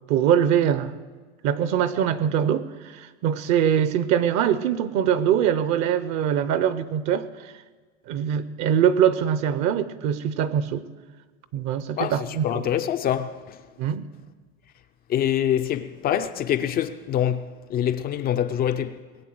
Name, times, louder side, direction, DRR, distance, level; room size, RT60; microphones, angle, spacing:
voice 1, 0.1-0.9 1.4-7.5 8.1-10.8 11.5-12.7 13.8-14.0, right 9 dB, 45° right, 0.7 m, -23 dB
voice 2, 12.0-13.6 15.1-19.0, left 10 dB, 25° left, 0.4 m, -25 dB
20.0 x 8.4 x 7.7 m
supercardioid pair, 130°, 41 cm